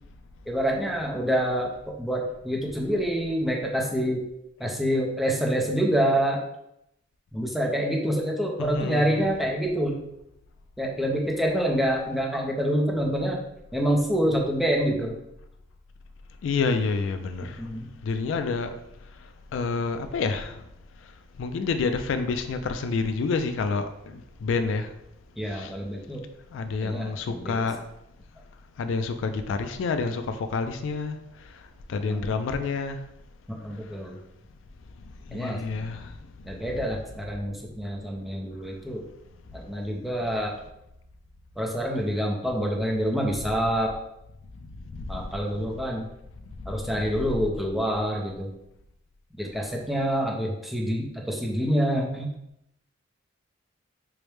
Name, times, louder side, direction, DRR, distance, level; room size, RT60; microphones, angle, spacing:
voice 1, 0.5-1.7 2.0-4.2 4.6-6.4 7.3-10.1 10.8-13.4 13.7-15.2 17.6-17.9 25.4-26.2 26.8-27.6 32.1-32.4 33.5-34.2 35.3-35.6 36.4-39.0 39.5-40.5 41.6-43.9 45.1-46.1 46.7-48.5 49.4-52.3, equal, ahead, 0.4 m, -27 dB
voice 2, 8.6-9.2 16.4-17.6 18.0-18.7 19.5-20.6 21.4-24.9 25.5-25.7 26.5-27.8 28.8-31.2 31.9-33.0 35.3-36.1 45.0-45.3, left 4 dB, 70° left, 0.3 m, -28 dB
4.6 x 2.1 x 3.2 m
head